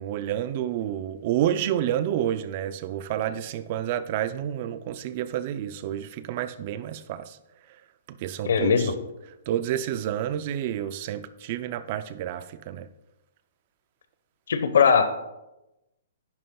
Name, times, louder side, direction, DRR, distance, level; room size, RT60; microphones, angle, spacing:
voice 1, 0.0-7.4 8.1-8.9 9.5-12.9, right 11 dB, 35° right, 13 dB, 0.5 m, -29 dB
voice 2, 8.4-8.9 14.5-15.1, left 6 dB, 75° left, 10 dB, 1.0 m, -20 dB
11.0 x 10.5 x 2.3 m, 0.96 s
hypercardioid pair, 165°, 0 cm